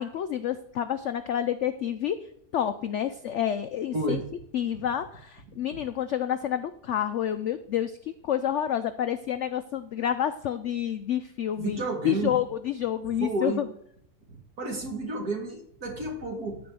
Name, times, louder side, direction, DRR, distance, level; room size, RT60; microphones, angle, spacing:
voice 1, 0.0-2.2 2.5-4.2 4.5-13.6, left 10 dB, 80° left, 11 dB, 0.6 m, -29 dB
voice 2, 3.9-4.2 11.6-12.3 13.2-13.6 14.6-16.6, right 2 dB, 60° right, 2 dB, 2.5 m, -31 dB
13.0 x 4.8 x 7.7 m, 0.70 s
omnidirectional pair, 1.8 m